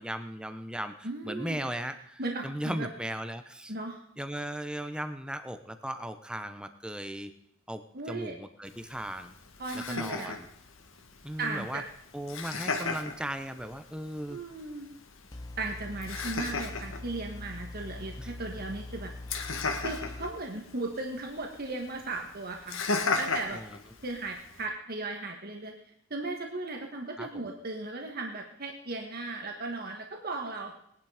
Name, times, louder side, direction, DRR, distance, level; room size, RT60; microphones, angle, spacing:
voice 1, 0.0-3.7 4.2-7.3 7.7-9.3 9.7-10.5 11.2-11.8 12.1-14.4 18.2-18.3 23.5-23.8 27.2-27.4, right 1 dB, 5° right, 9 dB, 1.0 m, -37 dB
voice 2, 1.0-1.6 2.2-2.9 3.7-4.0 7.9-8.3 9.6-10.3 11.4-11.8 14.3-14.9 15.6-19.1 19.8-22.8 23.2-23.6 24.0-25.7 26.1-30.7, right 2 dB, 50° right, 2 dB, 1.7 m, -36 dB
Laughter, 8.7-24.7, left 4 dB, 85° left, 1.9 m, -37 dB
sound 1, 15.3-20.3, left 2 dB, 20° left, 0.7 m, -42 dB
19.0 x 11.0 x 5.1 m, 0.71 s
head